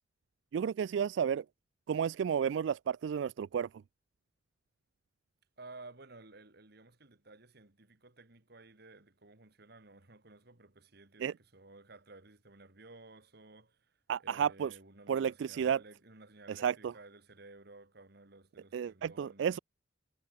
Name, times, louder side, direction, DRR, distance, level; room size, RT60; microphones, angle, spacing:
voice 1, 0.5-1.4 1.9-3.7 11.2-11.3 14.1-14.7 15.1-15.8 16.6-16.7 18.7-19.6, right 8 dB, 75° right, 0.3 m, -32 dB
voice 2, 5.6-19.6, right 2 dB, 60° right, 2.5 m, -55 dB
head